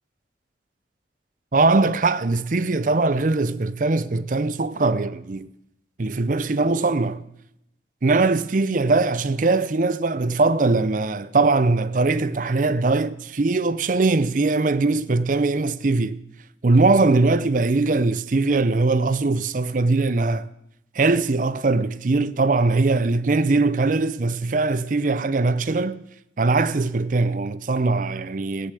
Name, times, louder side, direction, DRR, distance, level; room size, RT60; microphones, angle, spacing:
voice 1, 1.5-5.5 6.0-7.2 8.0-16.2 16.6-20.5 20.9-26.0 26.4-28.7, right 3 dB, 45° right, 0.6 m, -21 dB
15.5 x 9.9 x 7.6 m
head